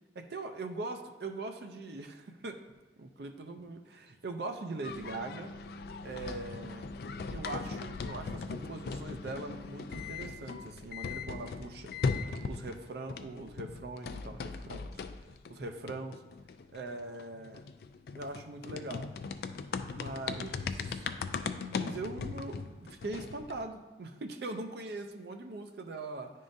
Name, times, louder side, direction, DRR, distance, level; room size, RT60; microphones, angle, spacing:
voice 1, 0.2-2.6 3.0-5.5 6.0-6.9 7.3-11.9 12.2-14.9 15.5-16.2 16.7-17.6 18.1-19.1 19.8-21.1 21.7-26.3, right 2 dB, 65° right, 6 dB, 0.5 m, -41 dB
sound 1, 4.8-12.8 13.1-23.7, left 4 dB, 55° left, 0.3 m, -39 dB
10.0 x 3.7 x 2.6 m, 1.2 s
head